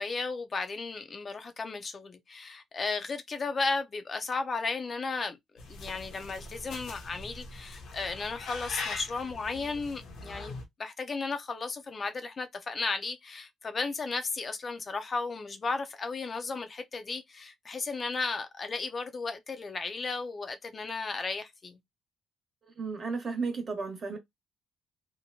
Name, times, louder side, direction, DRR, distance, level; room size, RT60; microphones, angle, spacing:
voice 1, 0.0-5.4 5.7-21.8, left 4 dB, 40° left, 0.5 m, -34 dB
sound 1, 5.6-10.6, left 3 dB, 80° left, 0.7 m, -42 dB
voice 2, 22.6-24.2, right 4 dB, 40° right, 1.2 m, -34 dB
2.8 x 2.1 x 2.6 m
cardioid pair, 80°, 0 cm